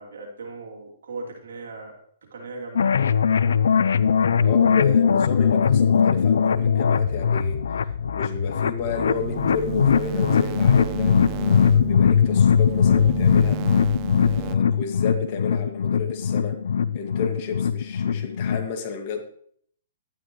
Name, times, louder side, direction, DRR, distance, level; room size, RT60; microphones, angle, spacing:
voice 1, 0.0-3.3, right 3 dB, 80° right, 0 dB, 2.9 m, -38 dB
sound 1, 2.8-18.7, left 7 dB, 80° left, 0.4 m, -20 dB
voice 2, 4.4-16.6 16.9-19.2, left 5 dB, 40° left, 4 dB, 1.9 m, -32 dB
sound 2, 9.1-14.5, right 19 dB, 30° right, 0.3 m, -33 dB
11.5 x 9.9 x 3.1 m, 0.62 s
hypercardioid pair, 145°, 0 cm